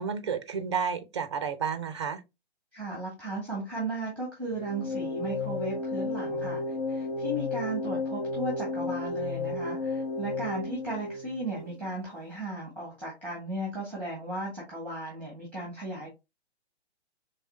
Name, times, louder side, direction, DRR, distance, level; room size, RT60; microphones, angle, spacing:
voice 1, 0.0-2.2, right 6 dB, 25° right, 0.4 m, -31 dB
voice 2, 2.7-16.1, right 2 dB, 5° left, 1.5 m, -36 dB
sound 1, 4.5-11.7, left 3 dB, 60° left, 0.7 m, -33 dB
4.6 x 3.2 x 2.7 m
figure-of-eight pair, 130°, 34 cm